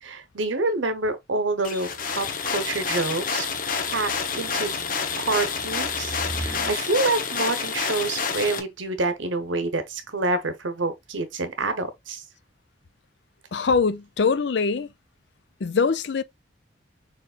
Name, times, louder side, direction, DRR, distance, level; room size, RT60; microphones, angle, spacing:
voice 1, 0.0-3.5 3.9-4.7 5.2-12.2, right 3 dB, 80° right, 1.0 m, -27 dB
sound 1, 1.6-8.6, left 5 dB, 45° left, 0.9 m, -28 dB
sound 2, 1.9-6.8, right 1 dB, 60° right, 1.6 m, -40 dB
voice 2, 13.5-14.9 15.6-16.2, left 5 dB, 65° left, 0.5 m, -23 dB
6.6 x 3.2 x 2.4 m
head